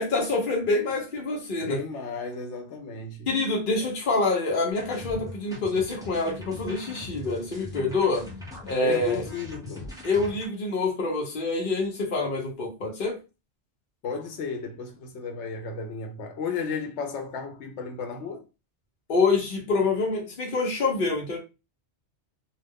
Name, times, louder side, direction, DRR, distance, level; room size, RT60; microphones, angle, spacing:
voice 1, 0.0-1.8 3.3-8.3 8.6-9.2 10.0-13.2 19.1-21.4, left 3 dB, 55° left, 0.9 m, -26 dB
voice 2, 1.6-3.3 8.8-10.0 14.0-18.4, left 5 dB, 80° left, 0.9 m, -34 dB
sound 1, 4.7-10.5, left 2 dB, 5° right, 0.6 m, -41 dB
2.4 x 2.3 x 3.5 m
omnidirectional pair, 1.2 m